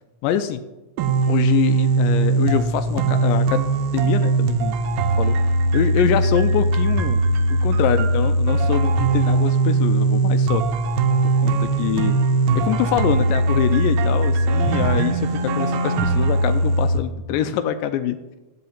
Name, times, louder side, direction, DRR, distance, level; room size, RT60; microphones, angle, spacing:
voice 1, 0.2-0.6 1.3-3.7 3.9-4.8 5.2-5.4 5.7-7.2 7.5-10.6 11.2-12.2 12.6-18.2, left 10 dB, 80° left, 10 dB, 2.1 m, -24 dB
sound 1, 1.0-17.0, right 2 dB, 90° right, 2.6 m, -20 dB
12.0 x 4.8 x 8.5 m, 1.1 s
omnidirectional pair, 4.1 m